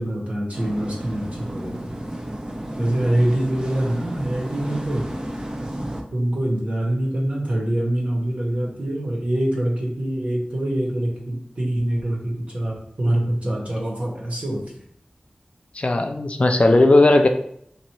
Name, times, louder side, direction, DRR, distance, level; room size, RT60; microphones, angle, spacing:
voice 1, 0.0-2.0 2.8-5.0 6.1-14.6, right 1 dB, 50° right, -3 dB, 1.4 m, -24 dB
sound 1, 0.5-6.0, right 1 dB, 25° right, 0.6 m, -32 dB
voice 2, 15.7-17.3, left 2 dB, 45° left, 4 dB, 0.4 m, -16 dB
2.9 x 2.9 x 4.4 m, 0.69 s
wide cardioid pair, 60°, 3 cm